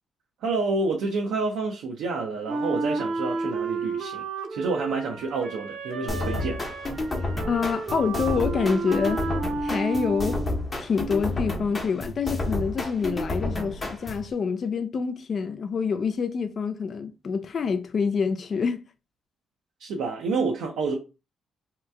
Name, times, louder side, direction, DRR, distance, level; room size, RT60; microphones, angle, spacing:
voice 1, 0.4-4.2 4.5-6.6 19.8-21.0, right 3 dB, 85° right, 0.6 m, -28 dB
Wind instrument woodwind instrument, 2.5-10.6, right 3 dB, 55° right, 0.8 m, -32 dB
sound 1, 6.1-14.3, left 2 dB, 30° left, 0.8 m, -31 dB
voice 2, 7.5-9.2 9.6-10.4 10.8-18.8, left 5 dB, 50° left, 0.3 m, -26 dB
2.8 x 2.2 x 3.4 m
cardioid pair, 90°, 0 cm